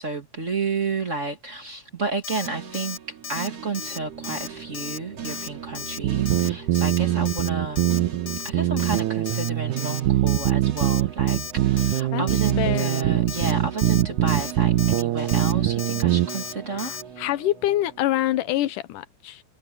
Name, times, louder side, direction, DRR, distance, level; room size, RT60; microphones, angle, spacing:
voice 1, 0.0-3.0 3.3-7.9 8.4-16.9, right 4 dB, 25° right, 2.1 m, -31 dB
Alarm, 2.2-2.5 2.7-3.0 3.2-3.5 3.7-4.5 4.7-5.0 5.2-5.5 5.7-6.0 6.3-6.5 6.7-7.0 7.2-7.5 7.8-8.0 8.3-8.5 8.8-9.0 9.3-9.5 9.8-10.0 10.3-10.5 10.8-11.0 11.3-11.5 11.8-12.0 12.3-12.5 12.8-13.0 13.3-13.5 13.8-14.0 14.3-14.5 14.8-15.0 15.3-15.5 15.8-16.0 16.3-16.5 16.8-17.0, left 7 dB, 60° left, 1.2 m, -35 dB
sound 1, 2.4-18.7, right 8 dB, 50° right, 3.5 m, -39 dB
sound 2, 6.0-16.3, right 14 dB, 75° right, 2.4 m, -22 dB
voice 2, 12.1-13.1 16.7-19.4, left 14 dB, 90° left, 2.5 m, -26 dB
omnidirectional pair, 3.6 m